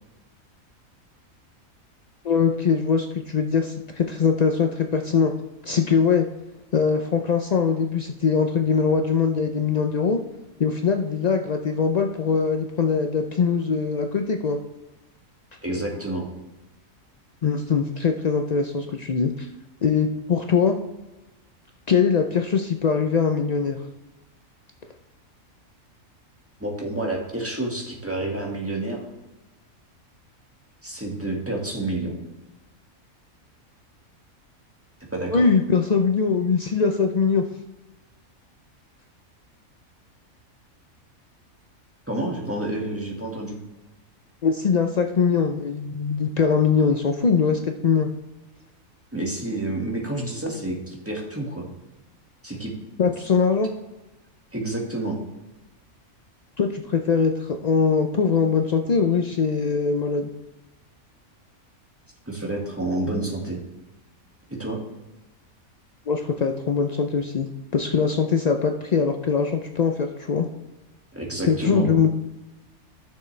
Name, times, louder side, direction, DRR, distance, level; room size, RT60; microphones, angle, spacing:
voice 1, 2.2-5.3 5.6-6.3 6.7-10.2 10.6-14.6 17.4-19.5 19.8-20.8 21.9-23.8 35.3-37.4 44.4-48.1 53.0-53.7 56.6-60.3 66.1-70.5 71.5-72.1, left 5 dB, 70° left, 4 dB, 0.3 m, -22 dB
voice 2, 15.6-16.3 26.6-29.0 30.8-32.1 35.1-35.5 42.1-43.6 49.1-51.7 52.4-52.7 54.5-55.2 62.3-63.6 64.6-64.8 71.1-71.9, right 2 dB, 10° right, -2 dB, 1.7 m, -29 dB
12.5 x 6.7 x 3.2 m, 1.0 s
omnidirectional pair, 1.5 m